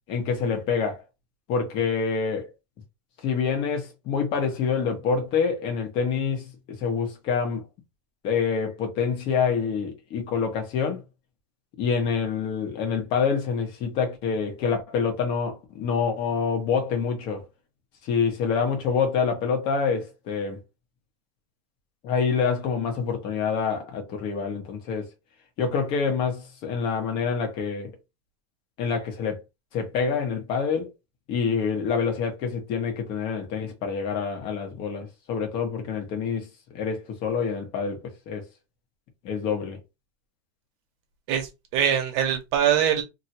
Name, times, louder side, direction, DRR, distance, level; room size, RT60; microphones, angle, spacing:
voice 1, 0.1-1.0 1.5-2.5 3.2-7.7 8.2-11.0 11.8-17.4 18.0-20.6 22.0-25.1 25.6-27.9 28.8-29.4 29.7-30.9 31.3-36.5 36.7-38.4 39.2-39.8, left 6 dB, 40° left, 1.2 m, -26 dB
voice 2, 41.3-43.0, right 9 dB, 50° right, 1.1 m, -23 dB
3.0 x 2.8 x 2.8 m
supercardioid pair, 155°, 13 cm